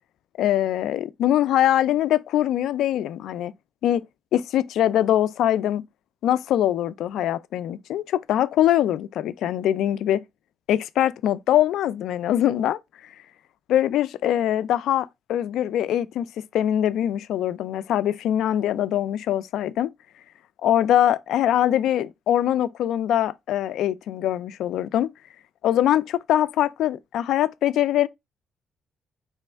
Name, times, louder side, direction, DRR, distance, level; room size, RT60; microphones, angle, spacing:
voice 1, 0.4-3.5 3.8-4.0 4.3-5.8 6.2-10.2 10.7-13.1 13.7-19.9 20.6-25.1 25.6-28.1, left 11 dB, 80° left, 0.3 m, -23 dB
4.2 x 3.1 x 3.3 m
cardioid pair, 90°, 0 cm